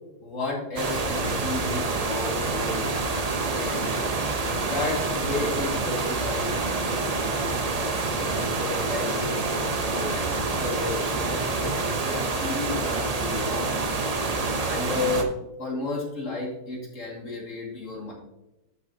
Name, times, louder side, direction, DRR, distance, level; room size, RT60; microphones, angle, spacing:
voice 1, 0.2-2.9 3.5-3.9 4.6-7.7 8.2-18.1, left 3 dB, 45° left, -2 dB, 2.3 m, -33 dB
sound 1, 0.8-15.2, right 3 dB, 55° right, 0.4 m, -27 dB
Vehicle, 1.5-10.6, equal, 40° right, 2.2 m, -44 dB
11.0 x 6.4 x 2.7 m, 0.97 s
omnidirectional pair, 1.8 m